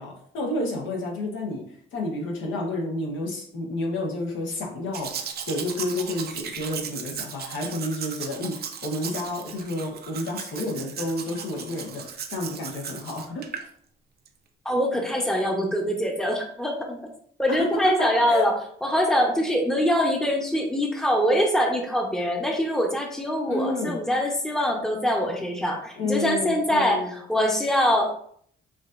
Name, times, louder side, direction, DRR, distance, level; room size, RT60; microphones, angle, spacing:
voice 1, 0.0-1.6 1.9-13.4 17.5-18.5 23.5-24.0 26.0-27.2, left 2 dB, 80° left, -1 dB, 1.1 m, -30 dB
Domestic sounds home sounds, 4.9-13.7 14.3-14.4, right 7 dB, 55° right, 0.5 m, -36 dB
voice 2, 14.6-17.0 17.4-18.5 18.8-28.2, equal, ahead, 1 dB, 0.7 m, -24 dB
4.9 x 2.6 x 2.5 m, 0.62 s
cardioid pair, 90°, 20 cm